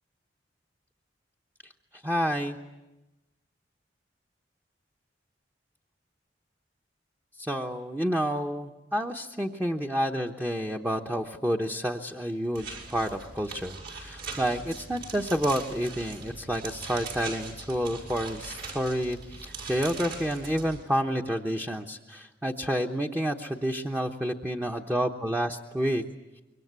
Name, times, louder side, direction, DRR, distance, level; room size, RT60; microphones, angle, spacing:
voice 1, 2.0-2.6 7.4-26.0, equal, 10° right, 2 dB, 1.0 m, -29 dB
sound 1, 12.5-20.8, right 4 dB, 65° right, 6.3 m, -41 dB
26.5 x 23.5 x 8.2 m, 1.0 s
head